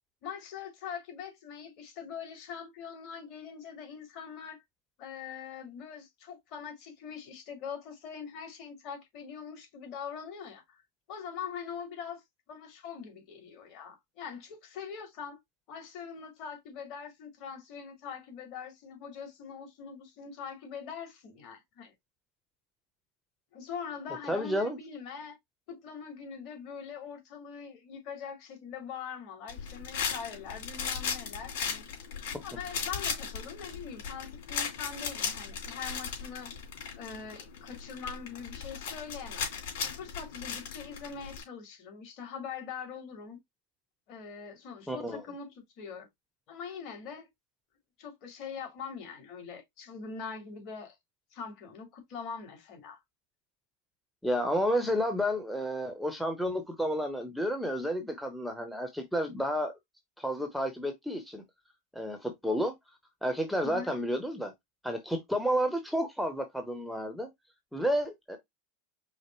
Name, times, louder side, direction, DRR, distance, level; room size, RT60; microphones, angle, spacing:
voice 1, 0.2-4.6 5.0-10.8 11.1-15.4 15.7-21.9 23.5-25.4 25.7-31.9 32.4-36.5 37.0-39.5 39.8-43.4 44.1-46.1 46.5-47.3 48.0-51.0 51.3-53.0 63.6-64.0, left 6 dB, 50° left, 2.2 m, -43 dB
voice 2, 24.3-24.8 44.9-45.2 54.2-59.7 60.2-61.4 61.9-62.7 63.2-64.5 64.8-67.3 67.7-68.4, equal, ahead, 0.9 m, -31 dB
sound 1, 29.5-41.4, left 6 dB, 75° left, 2.8 m, -37 dB
5.0 x 2.1 x 4.5 m
supercardioid pair, 130°, 0 cm